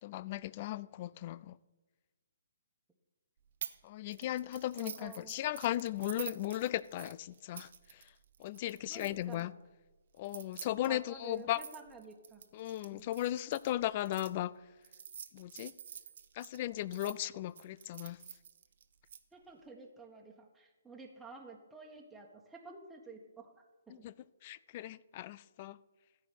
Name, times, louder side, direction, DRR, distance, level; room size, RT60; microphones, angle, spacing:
voice 1, 0.0-1.6 3.8-8.1 8.4-9.5 10.2-11.6 12.5-14.6 15.3-15.7 16.3-18.2 24.0-24.1 24.4-25.8, left 14 dB, 35° left, 0.4 m, -37 dB
sound 1, 3.6-3.8 4.1-9.4 10.2-14.3 14.8-17.1 17.6-19.2, right 8 dB, 55° right, 1.0 m, -48 dB
voice 2, 4.8-5.3 8.9-9.5 10.9-12.5 12.9-13.1 19.3-24.0, right 4 dB, 5° right, 1.6 m, -51 dB
14.5 x 4.9 x 9.3 m
figure-of-eight pair, 135°, 0 cm